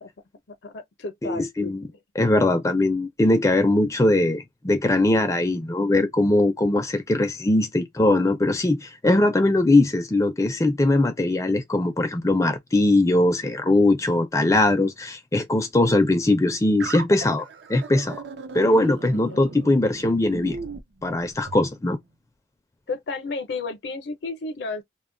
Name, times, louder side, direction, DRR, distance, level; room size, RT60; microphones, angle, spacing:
voice 1, 0.6-1.7 19.3-19.8 22.9-24.8, left 3 dB, 70° left, 0.5 m, -33 dB
voice 2, 1.2-1.8 2.2-18.2 18.5-20.6 21.0-22.0, left 2 dB, 15° left, 0.4 m, -21 dB
sound 1, 16.8-21.7, right 4 dB, 80° right, 0.5 m, -38 dB
2.2 x 2.0 x 3.7 m
head